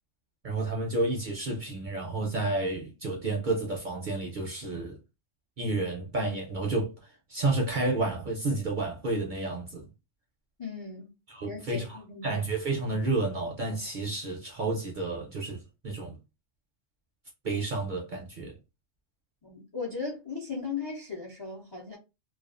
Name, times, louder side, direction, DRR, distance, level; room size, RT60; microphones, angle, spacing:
voice 1, 0.4-5.0 5.6-9.9 11.3-12.0 12.2-16.2 17.4-18.6, right 2 dB, 55° right, 0.6 m, -31 dB
voice 2, 10.6-11.1 11.4-12.4 19.4-22.0, left 5 dB, 35° left, 0.4 m, -37 dB
2.4 x 2.3 x 2.4 m
omnidirectional pair, 1.3 m